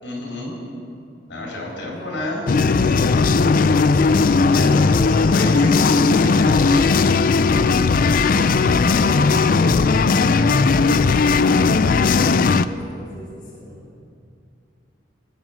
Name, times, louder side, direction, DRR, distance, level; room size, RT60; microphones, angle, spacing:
voice 1, 0.0-0.5 1.3-2.4 4.5-6.6, left 1 dB, 65° left, -3 dB, 4.2 m, -30 dB
voice 2, 1.5-2.1 2.7-4.2 8.5-11.7 12.0-13.9, left 1 dB, 25° left, -8 dB, 2.5 m, -38 dB
sound 1, 2.5-12.7, left 4 dB, 50° left, 0.4 m, -16 dB
19.0 x 7.8 x 7.3 m, 2.4 s
head